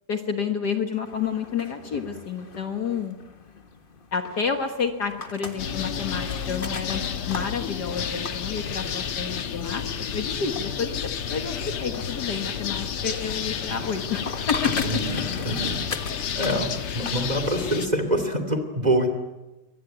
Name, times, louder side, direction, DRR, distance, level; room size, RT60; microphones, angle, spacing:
voice 1, 0.1-3.2 4.1-9.9 10.1-15.0, left 6 dB, 50° left, 6 dB, 1.9 m, -30 dB
sound 1, 1.0-17.9, left 4 dB, 30° left, 1.2 m, -40 dB
sound 2, 5.6-17.9, left 7 dB, 85° left, 2.3 m, -31 dB
voice 2, 14.8-15.8 16.3-19.1, equal, 20° right, 6 dB, 2.6 m, -25 dB
23.5 x 19.0 x 9.2 m, 1.1 s
omnidirectional pair, 2.4 m